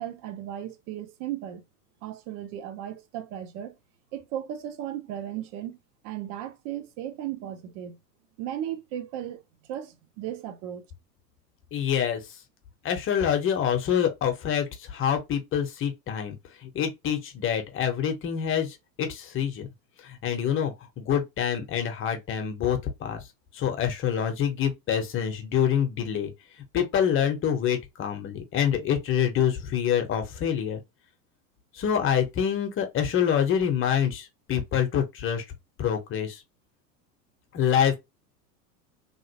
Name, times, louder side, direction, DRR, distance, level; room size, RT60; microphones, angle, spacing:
voice 1, 0.0-1.6 2.0-3.7 4.1-5.8 6.0-8.0 8.4-9.4 9.7-10.9, right 11 dB, 35° right, 0.7 m, -36 dB
voice 2, 11.7-12.2 12.8-16.3 16.6-19.7 20.2-23.2 23.5-26.3 26.7-30.8 31.8-35.4 35.8-36.4 37.5-38.0, left 8 dB, 25° left, 0.9 m, -26 dB
3.0 x 2.8 x 2.8 m
figure-of-eight pair, 90°, 49 cm